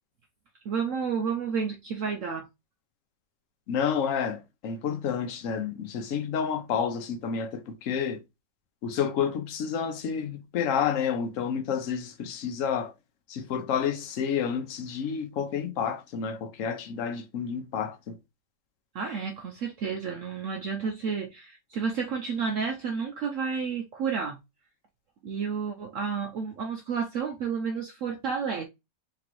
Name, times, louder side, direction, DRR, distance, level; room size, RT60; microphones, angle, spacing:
voice 1, 0.6-2.5 18.9-24.4 25.2-28.6, right 6 dB, 75° right, 0.7 m, -31 dB
voice 2, 3.7-8.2 8.8-12.9 13.3-18.2, left 7 dB, 60° left, 0.9 m, -30 dB
3.9 x 3.4 x 3.0 m
omnidirectional pair, 1.9 m